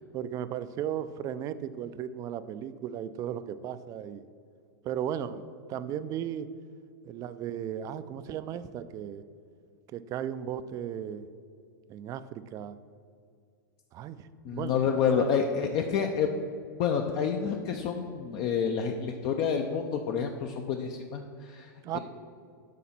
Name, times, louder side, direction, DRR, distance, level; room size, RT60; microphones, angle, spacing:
voice 1, 0.1-4.2 4.8-5.4 5.7-6.5 7.0-9.2 9.9-11.3 11.9-12.8 13.9-14.8 15.1-15.3 21.8-22.0, right 10 dB, 30° right, 13 dB, 0.4 m, -35 dB
voice 2, 14.4-16.5 16.8-22.0, left 6 dB, 45° left, 4 dB, 0.5 m, -29 dB
8.4 x 4.1 x 5.8 m, 2.2 s
hypercardioid pair, 115°, 11 cm